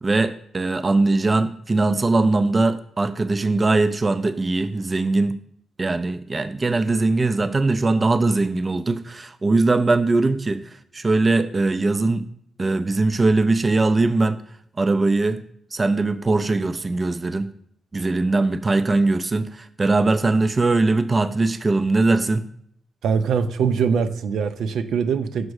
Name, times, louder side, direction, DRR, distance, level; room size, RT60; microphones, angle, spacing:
voice 1, 0.0-5.4 5.8-12.2 12.6-14.4 14.8-15.4 15.7-17.5 17.9-22.5, right 3 dB, 30° right, 0.4 m, -21 dB
voice 2, 23.0-25.5, right 6 dB, 85° right, 0.6 m, -22 dB
6.3 x 5.3 x 4.8 m
cardioid pair, 115°, 0 cm